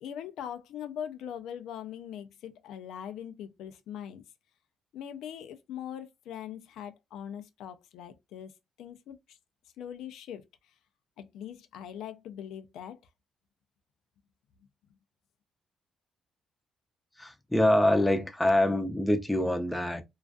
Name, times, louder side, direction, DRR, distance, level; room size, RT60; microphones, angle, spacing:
voice 1, 0.0-4.2 4.9-8.5 8.8-9.4 9.8-10.4 11.2-13.0, left 9 dB, 85° left, 0.3 m, -41 dB
voice 2, 17.2-20.0, left 1 dB, 5° left, 0.5 m, -25 dB
2.4 x 2.3 x 2.2 m
cardioid pair, 90°, 0 cm